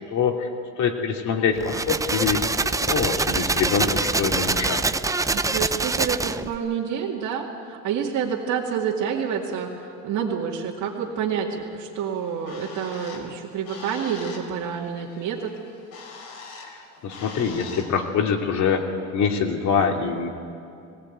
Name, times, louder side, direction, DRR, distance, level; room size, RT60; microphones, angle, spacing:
voice 1, 0.1-0.5 0.8-2.4 2.9-4.8 16.7-18.9 19.1-20.3, left 6 dB, 60° left, 3 dB, 2.7 m, -24 dB
sound 1, 1.6-6.6, right 3 dB, 10° right, 0.5 m, -24 dB
voice 2, 5.3-15.5, right 7 dB, 60° right, -3 dB, 2.2 m, -28 dB
Bird, 12.1-18.0, left 4 dB, 80° left, 4.3 m, -43 dB
19.5 x 17.0 x 9.3 m, 2.6 s
cardioid pair, 110°, 32 cm